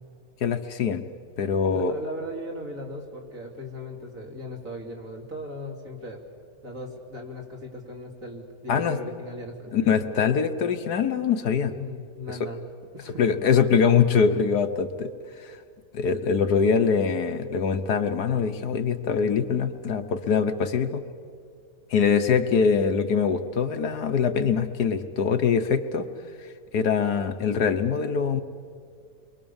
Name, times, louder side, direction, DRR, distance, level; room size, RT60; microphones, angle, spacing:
voice 1, 0.4-1.0 1.4-1.9 8.7-9.0 9.7-11.7 12.3-12.5 13.1-15.1 15.4-15.5 15.9-21.0 21.9-26.1 26.7-28.4, left 6 dB, 65° left, 9 dB, 1.5 m, -23 dB
voice 2, 1.7-6.2 6.6-10.1 11.7-12.6 12.9-13.4, left 1 dB, 50° right, 1 dB, 3.5 m, -38 dB
29.5 x 23.0 x 7.2 m, 2.2 s
omnidirectional pair, 1.9 m